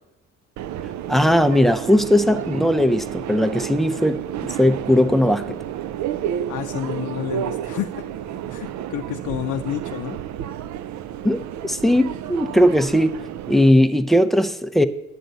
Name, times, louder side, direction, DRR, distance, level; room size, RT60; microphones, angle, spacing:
Subway metro underground, 0.6-13.7, right 10 dB, 70° right, 0.4 m, -31 dB
voice 1, 1.1-5.6 11.2-13.1 13.5-14.9, left 1 dB, ahead, 9 dB, 0.4 m, -18 dB
voice 2, 6.5-8.0 8.5-10.2, left 12 dB, 80° left, 5 dB, 0.5 m, -29 dB
10.0 x 8.0 x 3.9 m, 1.0 s
cardioid pair, 90°, 30 cm